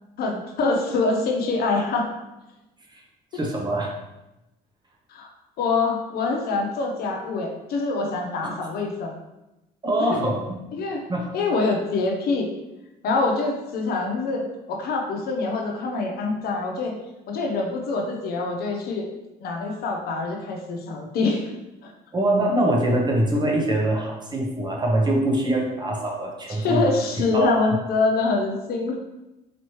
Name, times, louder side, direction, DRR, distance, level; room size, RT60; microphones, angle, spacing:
voice 1, 0.2-2.1 5.1-5.3 5.6-9.1 10.1-10.2 10.7-11.0 11.3-12.5 13.0-16.9 17.3-19.1 19.4-21.5 21.8-21.9 26.6-29.0, left 3 dB, 65° left, 1 dB, 0.8 m, -25 dB
voice 2, 3.3-3.9 8.4-8.5 9.8-10.6 11.1-11.2 22.1-26.8 27.3-27.6, right 1 dB, 25° right, -1 dB, 0.9 m, -23 dB
4.2 x 3.0 x 3.0 m, 0.97 s
cardioid pair, 110°, 17 cm